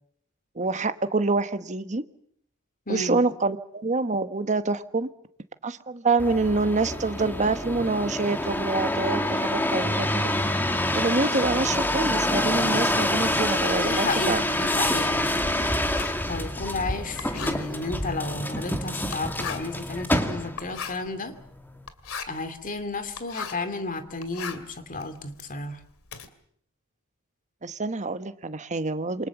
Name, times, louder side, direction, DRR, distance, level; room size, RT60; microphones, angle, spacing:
voice 1, 0.5-2.0 2.9-5.1 5.6-10.3 10.9-14.4 27.6-29.3, right 3 dB, 35° right, 10 dB, 1.2 m, -26 dB
voice 2, 2.9-3.2 13.7-15.3 16.3-21.3 22.3-25.8, left 3 dB, 40° left, 10 dB, 2.5 m, -32 dB
sound 1, 6.2-20.7 21.3-21.9, left 1 dB, 10° left, 2.2 m, -27 dB
Writing, 13.5-23.7 24.1-26.3, left 6 dB, 80° left, 2.5 m, -40 dB
28.0 x 23.5 x 7.2 m, 0.67 s
head